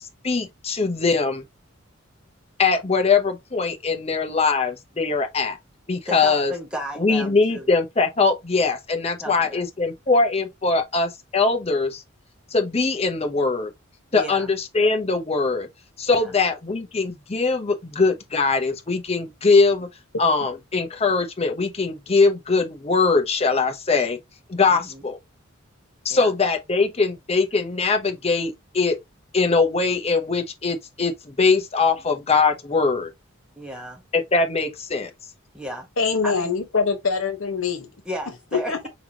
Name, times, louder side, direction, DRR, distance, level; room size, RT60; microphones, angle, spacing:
voice 1, 0.2-1.3 2.6-5.5 5.9-6.5 7.0-12.0 12.5-13.7 14.1-15.7 16.0-19.9 20.2-24.2 24.5-25.2 26.0-29.0 29.3-33.1 34.1-35.1, left 4 dB, 30° left, 0.8 m, -21 dB
voice 2, 6.1-7.7 9.2-9.6 14.1-14.5 16.1-16.3 24.7-25.0 26.1-26.3 33.5-34.0 35.5-35.9 36.2-36.5 38.0-38.9, equal, 5° right, 1.3 m, -34 dB
voice 3, 36.0-37.9 38.5-38.9, left 5 dB, 80° left, 1.2 m, -24 dB
4.9 x 3.4 x 2.8 m
head